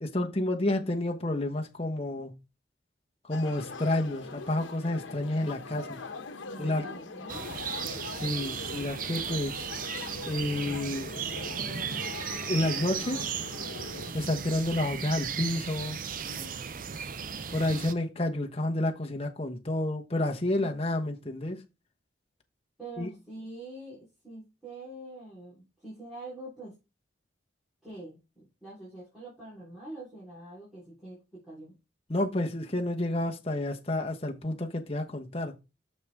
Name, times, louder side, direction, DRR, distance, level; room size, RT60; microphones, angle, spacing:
voice 1, 0.0-2.4 3.2-6.0 6.6-6.9 8.1-9.7 10.3-11.1 12.3-13.3 14.1-16.0 17.5-21.6 23.0-23.1 32.1-35.6, left 1 dB, 30° left, 1.1 m, -30 dB
sound 1, 3.3-14.1, left 4 dB, 85° left, 1.0 m, -42 dB
voice 2, 6.4-7.5 16.2-16.8 20.6-20.7 22.8-26.7 27.8-31.7, right 2 dB, ahead, 3.7 m, -45 dB
sound 2, 7.3-17.9, right 7 dB, 45° right, 0.5 m, -36 dB
6.6 x 6.5 x 3.5 m
head